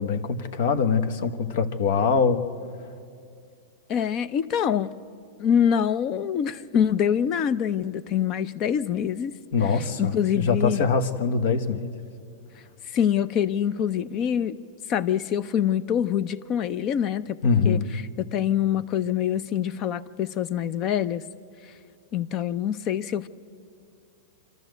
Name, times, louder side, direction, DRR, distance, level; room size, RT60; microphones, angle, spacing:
voice 1, 0.0-2.5 9.5-12.0 17.4-17.9, left 5 dB, 65° left, 10 dB, 1.2 m, -23 dB
voice 2, 3.9-5.0 5.4-9.3 10.0-10.8 12.9-14.6 14.9-17.4 17.6-17.8 18.2-21.2 22.1-23.3, left 9 dB, 35° left, 17 dB, 0.6 m, -25 dB
26.5 x 12.5 x 8.0 m, 2.5 s
supercardioid pair, 140°, 0 cm